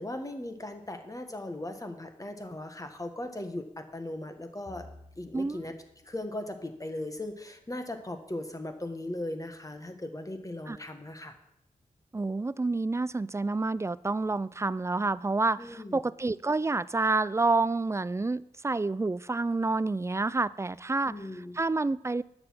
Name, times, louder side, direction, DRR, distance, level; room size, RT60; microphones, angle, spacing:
voice 1, 0.0-4.9 5.2-5.7 6.0-11.3 15.6-16.1 21.1-21.6, left 1 dB, 25° left, 1.5 m, -38 dB
sound 1, 4.7-7.4, left 2 dB, 70° left, 4.8 m, -55 dB
voice 2, 12.1-21.1 21.5-22.2, right 3 dB, 20° right, 0.4 m, -28 dB
9.6 x 6.8 x 5.8 m
cardioid pair, 40°, 15 cm